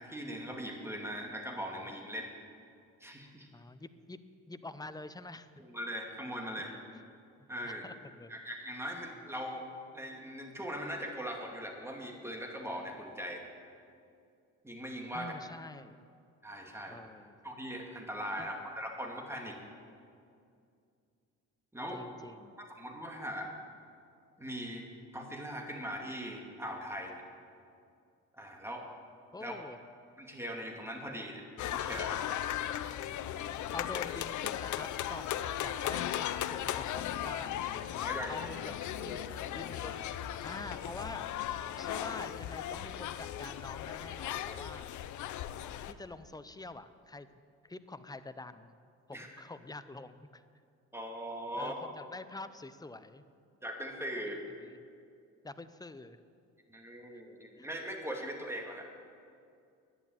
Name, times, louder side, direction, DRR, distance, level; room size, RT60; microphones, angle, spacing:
voice 1, 0.0-2.3 3.0-3.5 5.6-6.7 7.5-7.8 8.3-9.6 9.9-13.4 14.6-15.3 16.4-17.0 17.4-19.6 21.7-22.0 22.6-23.5 24.4-24.9 25.1-27.2 28.4-28.8 29.4-29.5 30.2-31.4 31.7-32.4 38.0-38.5 39.0-39.2 49.1-49.3 50.9-51.8 53.6-54.4 56.7-58.9, equal, 10° right, 1 dB, 2.3 m, -40 dB
voice 2, 3.5-4.2 4.5-5.6 7.4-8.3 15.1-16.0 16.9-17.3 18.4-18.5 21.9-22.5 29.3-29.8 33.4-37.6 38.3-38.7 39.5-40.1 40.4-41.3 41.8-44.9 45.9-47.3 47.7-48.7 49.1-50.4 51.6-53.2 54.3-54.8 55.4-56.2 57.6-57.7, left 2 dB, 15° left, 12 dB, 0.7 m, -46 dB
sound 1, 31.6-45.9, left 11 dB, 75° left, 0.7 m, -37 dB
11.0 x 10.5 x 8.8 m, 2.4 s
cardioid pair, 90°, 30 cm